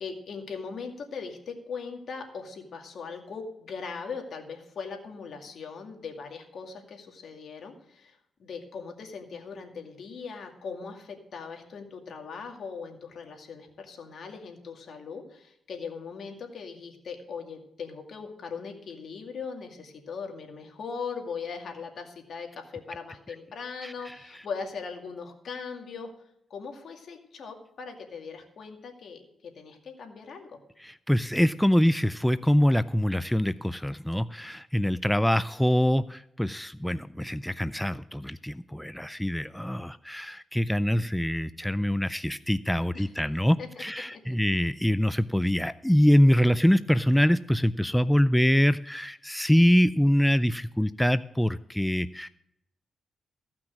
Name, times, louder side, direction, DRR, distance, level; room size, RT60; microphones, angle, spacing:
voice 1, 0.0-26.1 26.5-30.6 42.9-43.1 43.6-43.8 44.1-44.4, left 5 dB, 65° left, 3 dB, 2.2 m, -39 dB
voice 2, 23.8-24.4 30.8-52.3, equal, 5° left, 14 dB, 0.3 m, -24 dB
15.0 x 6.0 x 6.3 m, 0.79 s
cardioid pair, 80°, 0 cm